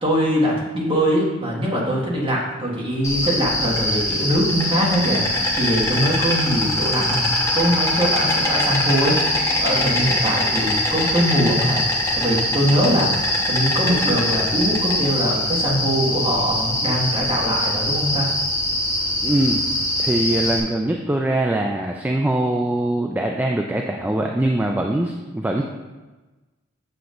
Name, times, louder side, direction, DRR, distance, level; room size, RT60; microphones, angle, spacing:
voice 1, 0.0-5.2 5.5-9.2 9.6-11.8 12.1-18.3, equal, 25° right, -4 dB, 1.6 m, -22 dB
Insect, 3.0-20.6, left 1 dB, 15° left, 1.1 m, -22 dB
voice 2, 19.2-19.6 20.0-25.6, right 1 dB, 10° right, 2 dB, 0.3 m, -22 dB
7.8 x 6.9 x 2.5 m, 1.2 s
head